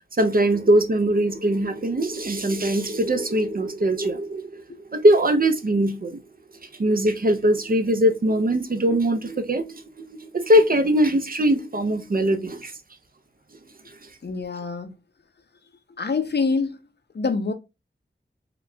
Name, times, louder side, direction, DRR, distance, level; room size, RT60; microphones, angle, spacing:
voice 1, 0.2-4.6 4.9-6.2 6.8-9.8 10.1-12.7, right 1 dB, 45° right, 0.6 m, -21 dB
voice 2, 14.2-14.9 16.0-16.8 17.1-17.5, left 4 dB, 55° left, 0.6 m, -25 dB
4.0 x 2.3 x 3.2 m
wide cardioid pair, 50°, 20 cm